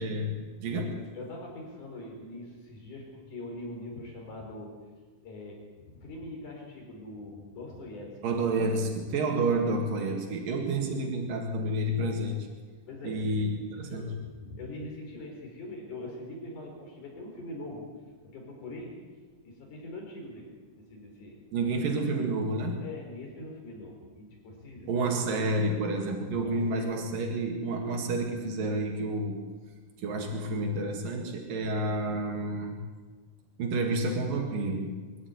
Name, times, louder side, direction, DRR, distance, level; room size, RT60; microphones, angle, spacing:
voice 1, 0.0-1.1 8.2-12.5 13.0-14.2 21.5-22.8 24.9-29.4 30.0-32.8 33.6-34.9, right 2 dB, 90° right, 2 dB, 3.9 m, -30 dB
voice 2, 1.1-4.8 5.2-5.6 5.9-8.3 12.9-13.5 13.9-17.9 18.2-19.0 19.4-20.5 20.7-21.4 22.8-25.4 26.3-27.2, left 2 dB, 65° left, 0 dB, 5.7 m, -43 dB
23.5 x 12.5 x 9.6 m, 1.4 s
omnidirectional pair, 3.8 m